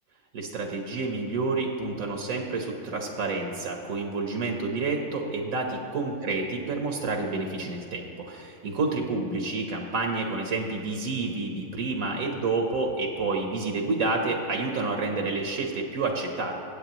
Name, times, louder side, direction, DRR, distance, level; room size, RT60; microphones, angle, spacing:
voice 1, 0.3-16.6, right 3 dB, 80° right, 2 dB, 1.5 m, -29 dB
21.5 x 8.5 x 3.0 m, 2.6 s
omnidirectional pair, 1.4 m